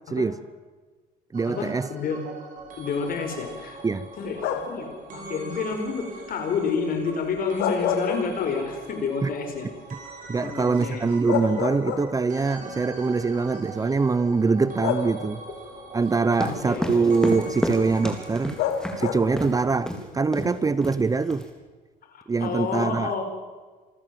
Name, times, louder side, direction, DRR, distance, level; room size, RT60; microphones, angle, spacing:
voice 1, 0.1-0.4 1.3-1.9 3.8-4.1 9.2-9.3 10.3-15.4 15.9-18.6 19.0-21.4 22.3-23.1, right 4 dB, 20° right, 16 dB, 0.7 m, -23 dB
sound 1, 1.3-19.4 19.7-19.8, right 2 dB, 50° right, 6.2 m, -42 dB
voice 2, 1.5-2.2 2.8-3.8 4.2-9.7 10.4-11.0 16.4-16.9 22.1-23.2, left 5 dB, 60° left, 5 dB, 4.6 m, -29 dB
sound 2, 4.4-4.9 7.4-8.8 9.2-9.3 10.8-10.9 11.3-12.4 13.4-13.6 14.8-15.5 18.6-19.5, left 8 dB, 85° left, 2.1 m, -28 dB
sound 3, 16.3-19.0 19.4-19.5 19.9-20.0 20.3-20.6 20.8-21.4, equal, 5° left, 3.7 m, -29 dB
27.0 x 14.0 x 7.6 m, 1.4 s
cardioid pair, 110°, 17 cm